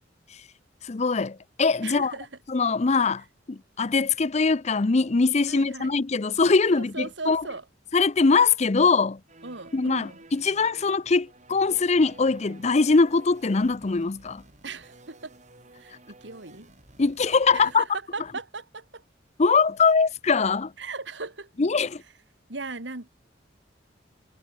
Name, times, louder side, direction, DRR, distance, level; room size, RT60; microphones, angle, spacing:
voice 1, 0.8-2.1 2.5-3.2 3.5-7.4 7.9-9.2 9.7-14.4 17.0-17.8 19.4-20.7 21.6-22.0, left 4 dB, 35° left, 0.6 m, -22 dB
voice 2, 1.8-2.3 5.5-5.9 6.7-7.6 9.4-10.2 14.6-15.3 15.8-16.7 17.5-19.0 20.8-21.5 22.5-23.1, right 3 dB, 75° right, 2.6 m, -37 dB
sound 1, 9.3-17.8, right 2 dB, 40° right, 4.8 m, -52 dB
head